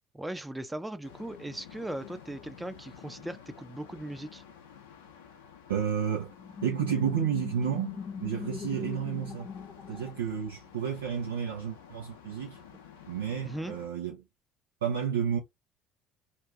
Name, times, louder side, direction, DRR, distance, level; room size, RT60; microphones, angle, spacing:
voice 1, 0.1-4.4 13.4-13.7, right 1 dB, 10° right, 0.6 m, -38 dB
sound 1, 1.0-13.9, left 8 dB, 80° left, 0.7 m, -51 dB
voice 2, 5.7-6.3 6.6-9.5 9.9-12.6 13.1-14.2 14.8-15.4, right 8 dB, 80° right, 0.8 m, -31 dB
sound 2, 6.3-10.8, left 6 dB, 30° left, 0.3 m, -41 dB
2.7 x 2.5 x 3.3 m
hypercardioid pair, 60°, 0 cm